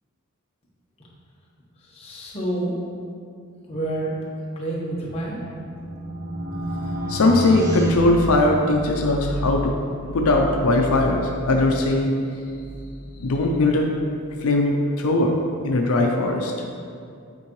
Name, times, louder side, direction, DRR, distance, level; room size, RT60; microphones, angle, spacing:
voice 1, 1.9-2.8 3.7-4.1 4.6-5.4, right 1 dB, 30° left, -5 dB, 1.1 m, -28 dB
sound 1, 5.1-9.0, right 1 dB, 50° right, 0.9 m, -29 dB
voice 2, 7.1-9.7 10.1-12.1 13.2-13.9 14.4-15.3 15.6-16.5, left 2 dB, 75° left, 1 dB, 0.5 m, -20 dB
sound 2, 7.7-13.5, right 1 dB, 20° right, 0.8 m, -34 dB
8.4 x 4.5 x 3.1 m, 2.4 s
head